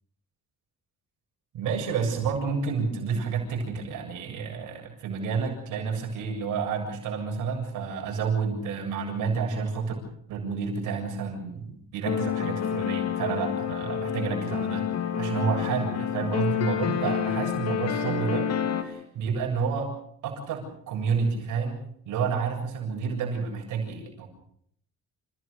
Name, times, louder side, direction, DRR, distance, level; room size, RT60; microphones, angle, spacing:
voice 1, 1.5-9.9 10.3-14.8 15.2-18.5 18.8-19.9 20.2-21.8 22.1-24.3, right 5 dB, 85° right, 2 dB, 7.5 m, -30 dB
sound 1, 12.0-18.8, left 8 dB, 55° left, 3.1 m, -28 dB
29.0 x 16.5 x 6.7 m, 0.67 s
cardioid pair, 90°, 30 cm